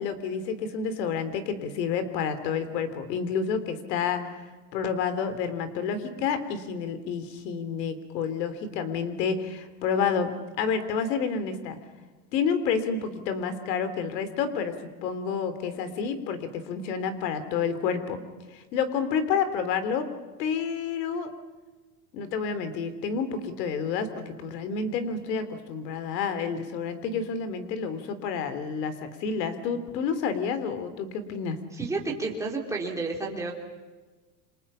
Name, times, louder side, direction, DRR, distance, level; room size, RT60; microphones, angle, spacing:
voice 1, 0.0-4.3 4.7-10.3 10.6-11.8 12.3-18.2 18.5-20.1 20.4-21.3 22.1-31.6, left 6 dB, 85° left, 11 dB, 3.5 m, -29 dB
voice 2, 31.7-33.5, right 3 dB, 5° right, -2 dB, 3.3 m, -31 dB
29.5 x 26.0 x 5.7 m, 1.3 s
supercardioid pair, 175°, 48 cm